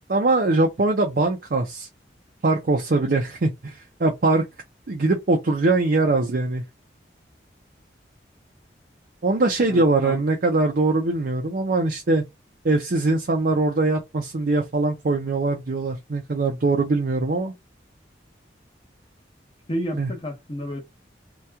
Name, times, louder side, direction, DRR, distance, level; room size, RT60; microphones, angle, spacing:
voice 1, 0.1-1.9 2.4-4.5 4.9-6.6 9.2-12.2 12.6-17.5 19.9-20.1, right 2 dB, 55° right, 0.5 m, -22 dB
voice 2, 9.6-10.2 19.7-20.8, equal, 30° left, 0.9 m, -31 dB
2.8 x 2.3 x 3.4 m
head